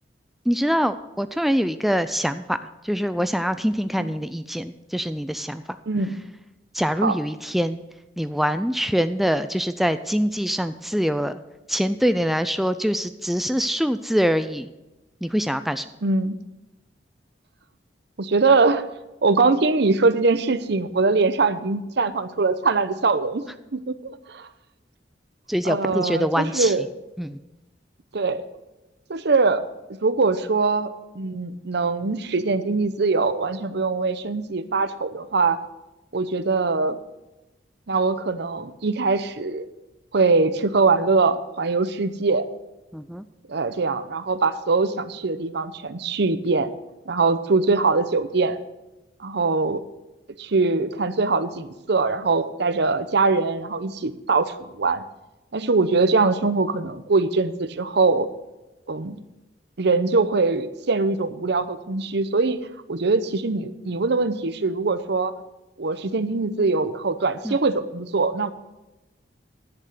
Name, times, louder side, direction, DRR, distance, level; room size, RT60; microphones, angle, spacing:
voice 1, 0.5-2.6 2.8-5.8 6.7-7.8 8.2-11.4 11.7-14.7 15.2-15.9 25.5-26.8 27.2-27.4 42.9-43.2 67.4-67.6, equal, ahead, 10 dB, 0.3 m, -24 dB
voice 2, 5.9-6.2 7.0-7.2 16.0-16.4 18.2-18.8 19.2-23.5 23.7-24.5 25.6-26.8 28.1-28.4 29.1-29.6 30.0-35.6 36.1-37.0 37.9-39.6 40.1-42.5 43.5-46.7 47.1-48.6 49.2-49.8 50.4-55.0 55.5-58.3 58.9-59.2 59.8-62.6 62.9-65.3 65.8-68.5, right 3 dB, 65° right, 12 dB, 0.7 m, -22 dB
10.5 x 8.0 x 6.6 m, 1.0 s
head